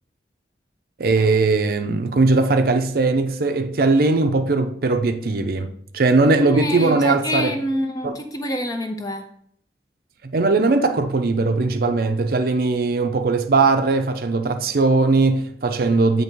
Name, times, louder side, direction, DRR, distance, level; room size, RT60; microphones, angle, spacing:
voice 1, 1.0-7.6 8.0-8.1 10.2-16.2, right 3 dB, 55° right, 0.5 m, -19 dB
voice 2, 6.4-9.2, left 1 dB, 20° left, 0.5 m, -26 dB
8.4 x 2.9 x 4.5 m
head